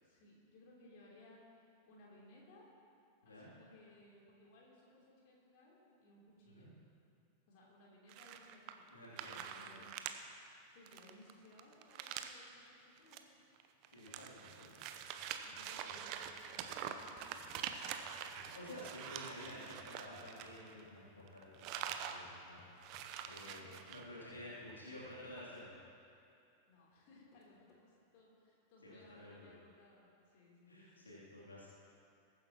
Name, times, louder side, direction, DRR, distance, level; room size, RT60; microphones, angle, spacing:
voice 1, 0.0-1.4 1.9-2.7 3.2-6.7 7.5-10.0 10.7-13.2 15.2-17.6 23.4-24.9 26.7-31.1, left 1 dB, 45° left, -5 dB, 3.3 m, -62 dB
sound 1, 8.1-8.9 9.2-10.2 10.5-10.6 10.9-12.4 13.0-13.2 13.6-21.0 21.3-22.2 22.5-22.6 22.8-24.0, right 9 dB, 40° right, 0.8 m, -45 dB
voice 2, 8.9-9.8 13.9-14.8 18.2-25.8 28.8-29.5 30.7-31.7, left 1 dB, 75° left, -7 dB, 3.0 m, -52 dB
sound 2, 14.1-26.0 26.5-26.6 27.3-27.9, left 3 dB, 30° left, 2.1 m, -65 dB
22.0 x 9.7 x 3.0 m, 2.6 s
figure-of-eight pair, 90°, 0 cm